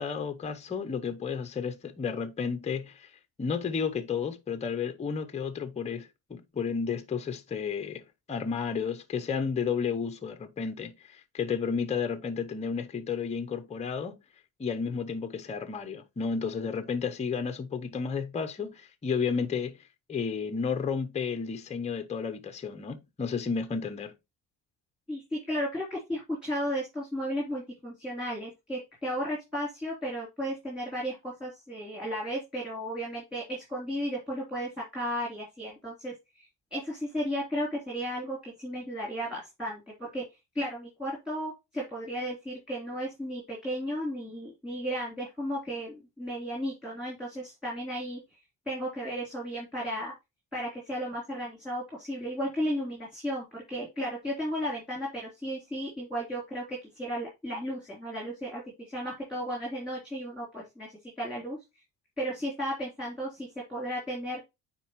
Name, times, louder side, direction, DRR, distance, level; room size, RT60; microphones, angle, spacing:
voice 1, 0.0-3.1 3.4-14.2 14.6-19.7 20.1-24.1, left 6 dB, 15° left, 0.6 m, -32 dB
voice 2, 25.1-40.2 40.5-48.2 48.6-50.1 50.5-60.9 61.2-61.6 62.2-64.4, equal, ahead, 3.3 m, -34 dB
9.0 x 4.3 x 3.0 m
cardioid pair, 145°, 44 cm